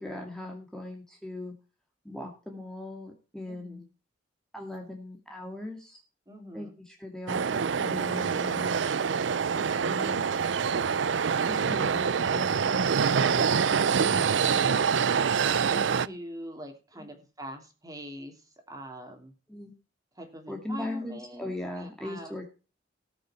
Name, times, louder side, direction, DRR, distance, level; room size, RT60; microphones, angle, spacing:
voice 1, 0.0-1.5 2.0-3.8 4.5-6.0 6.5-8.8 9.5-10.3 11.5-12.1 12.3-13.0 13.2-14.3 17.0-17.1 19.5-19.7 20.5-22.4, left 1 dB, 5° left, 1 dB, 2.2 m, -39 dB
voice 2, 3.5-3.9 6.3-6.7 15.4-19.3 20.1-22.5, equal, 20° right, 4 dB, 3.1 m, -43 dB
sound 1, 7.3-16.1, right 6 dB, 70° right, 0.5 m, -25 dB
18.5 x 6.7 x 4.4 m, 0.34 s
head